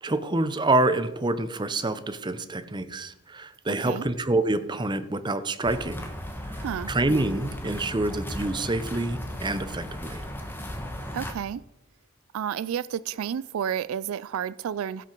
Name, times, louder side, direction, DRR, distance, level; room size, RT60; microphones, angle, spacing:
voice 1, 0.0-6.1 6.9-10.3, right 2 dB, 20° right, 0.6 m, -27 dB
voice 2, 3.7-4.0 6.6-6.9 11.1-11.6 12.3-15.0, right 8 dB, 75° right, 0.3 m, -31 dB
sound 1, 5.6-11.3, equal, 10° left, 1.2 m, -36 dB
16.5 x 5.9 x 4.5 m
head